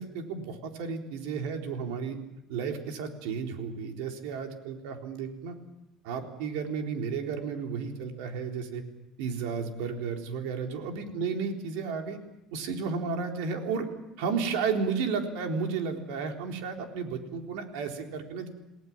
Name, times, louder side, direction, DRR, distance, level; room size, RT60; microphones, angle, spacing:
voice 1, 0.0-2.2 2.5-5.5 6.0-8.8 9.2-12.2 12.5-13.9 14.2-18.5, right 5 dB, 90° right, 3 dB, 3.8 m, -33 dB
29.0 x 18.5 x 7.4 m, 0.93 s
cardioid pair, 165°, 0 cm